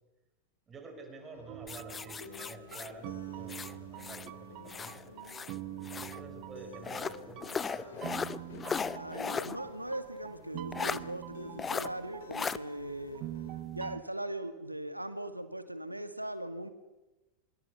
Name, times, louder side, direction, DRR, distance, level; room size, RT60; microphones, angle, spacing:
voice 1, 0.7-5.5 6.0-8.2, right 3 dB, 20° right, 4 dB, 6.1 m, -49 dB
sound 1, 1.2-13.6, left 6 dB, 65° left, 2.9 m, -53 dB
sound 2, 1.5-14.0, right 16 dB, 40° right, 1.1 m, -45 dB
sound 3, 1.7-4.3 4.7-6.2 6.8-9.6 9.9-10.0 10.7-11.0 11.6-11.9 12.3-12.6, left 6 dB, 20° left, 0.8 m, -37 dB
voice 2, 8.9-13.2 13.7-16.7, right 1 dB, 85° right, 11 dB, 1.9 m, -39 dB
25.5 x 22.5 x 6.6 m, 1.1 s
figure-of-eight pair, 90°, 0 cm